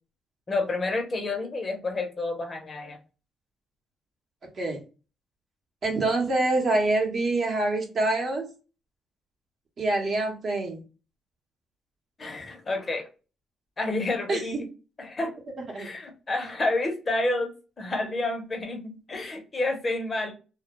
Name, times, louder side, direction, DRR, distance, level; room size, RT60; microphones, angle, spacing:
voice 1, 0.5-3.0 12.2-13.1 13.8-14.6 15.0-15.4 15.8-17.5 17.8-20.3, left 2 dB, 35° left, 3 dB, 0.7 m, -29 dB
voice 2, 5.8-8.5 9.8-10.8 14.3-14.6 15.7-15.9, right 2 dB, 50° right, 2 dB, 0.8 m, -25 dB
2.1 x 2.1 x 2.9 m, 0.32 s
cardioid pair, 90°, 0 cm